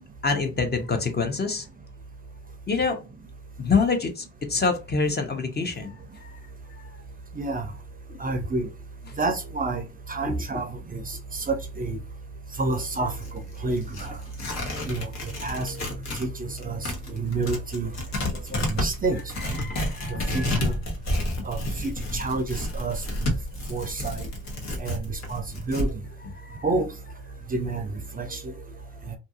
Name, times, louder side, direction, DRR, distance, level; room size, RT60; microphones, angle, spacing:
voice 1, 0.2-1.7 2.7-3.0 3.6-5.9 6.2-6.3 8.1-8.2 10.2-10.6 18.3-18.7 19.6-20.7 26.5-26.6, left 4 dB, 35° left, 0.8 m, -26 dB
voice 2, 7.4-7.7 8.2-8.7 9.2-9.8 10.1-12.0 12.6-13.1 13.6-14.2 14.9-15.1 15.4-15.8 16.1-17.9 18.5-19.2 20.3-20.7 21.4-23.0 23.7-24.3 24.8-25.9 26.6-26.9 27.5-28.5, right 3 dB, 30° right, 0.5 m, -29 dB
Tearing, 12.6-16.3 16.6-25.9, left 1 dB, 60° left, 1.1 m, -30 dB
2.7 x 2.6 x 2.4 m
cardioid pair, 90°, 30 cm